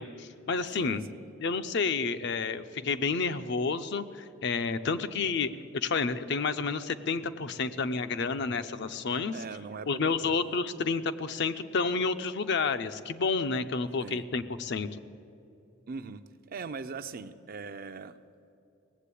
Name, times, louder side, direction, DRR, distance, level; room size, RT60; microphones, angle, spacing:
voice 1, 0.0-1.1 1.4-9.3 9.9-14.9, left 4 dB, 60° left, 10 dB, 0.6 m, -30 dB
voice 2, 0.8-1.3 9.3-10.5 14.0-14.2 15.9-16.2 16.5-18.1, right 4 dB, 45° right, 11 dB, 0.5 m, -41 dB
18.0 x 7.7 x 8.3 m, 2.7 s
head